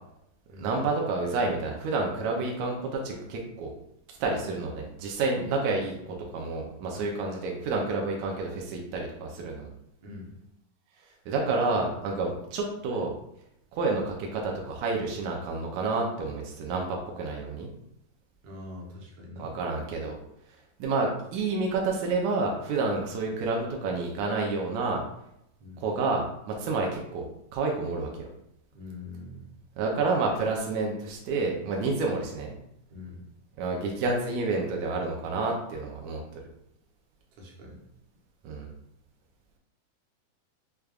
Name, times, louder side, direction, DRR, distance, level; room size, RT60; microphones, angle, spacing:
voice 1, 0.6-3.7 4.2-9.7 11.3-13.1 13.7-17.7 19.4-20.2 20.8-25.0 25.8-27.3 27.5-28.3 29.8-32.5 33.6-36.2 38.4-38.7, right 3 dB, 85° right, 0 dB, 1.6 m, -29 dB
voice 2, 10.0-10.3 18.4-19.5 25.6-25.9 28.7-29.6 32.9-33.2 37.3-37.8, left 2 dB, 70° right, -2 dB, 1.8 m, -44 dB
6.4 x 2.3 x 2.3 m, 0.78 s
omnidirectional pair, 3.9 m